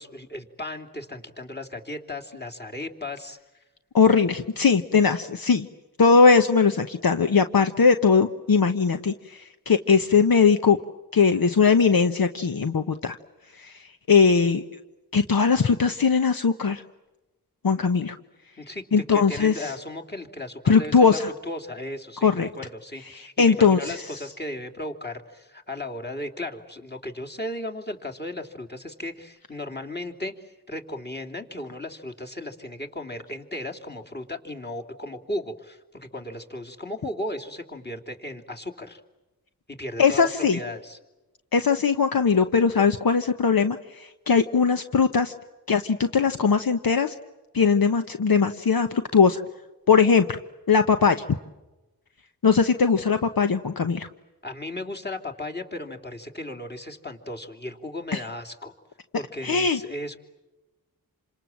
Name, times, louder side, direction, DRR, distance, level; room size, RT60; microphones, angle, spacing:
voice 1, 0.0-3.4 18.6-39.0 39.7-41.0 54.4-58.7 59.2-60.2, left 1 dB, 25° left, 3 dB, 3.2 m, -36 dB
voice 2, 3.9-5.7 6.0-10.8 11.1-13.1 13.6-13.7 14.1-14.6 15.1-16.8 17.6-18.2 18.9-19.5 20.7-21.3 22.2-22.5 23.4-23.9 40.0-40.6 41.5-45.3 45.7-47.1 47.5-49.4 49.9-50.4 50.7-51.2 52.4-54.1 58.1-58.2 59.4-59.8, left 5 dB, 65° left, 8 dB, 1.1 m, -20 dB
28.0 x 26.5 x 7.6 m, 1.1 s
cardioid pair, 55°, 38 cm